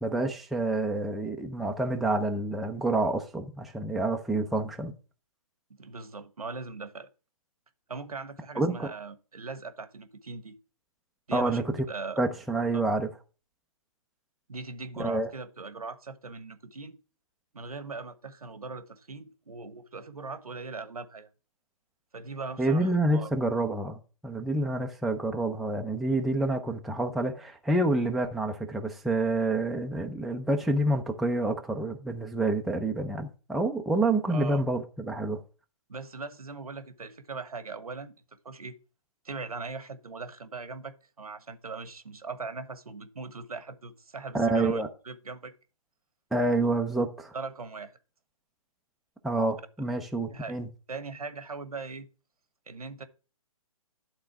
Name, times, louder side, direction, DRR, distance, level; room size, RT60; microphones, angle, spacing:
voice 1, 0.0-4.9 8.6-8.9 11.3-11.8 12.2-13.1 15.0-15.3 22.6-24.0 24.2-35.4 44.3-44.9 46.3-47.3 49.2-50.7, right 2 dB, ahead, 0.6 m, -28 dB
voice 2, 5.8-7.1 7.9-10.5 11.3-11.6 11.9-12.2 12.7-12.8 14.5-17.0 17.5-21.3 22.1-23.3 34.3-34.6 35.9-38.1 38.4-38.7 39.2-45.5 47.3-47.9 50.3-50.6 50.9-52.1 52.7-53.1, right 4 dB, 85° right, 1.2 m, -40 dB
11.5 x 3.9 x 5.8 m
hypercardioid pair, 140°, 18 cm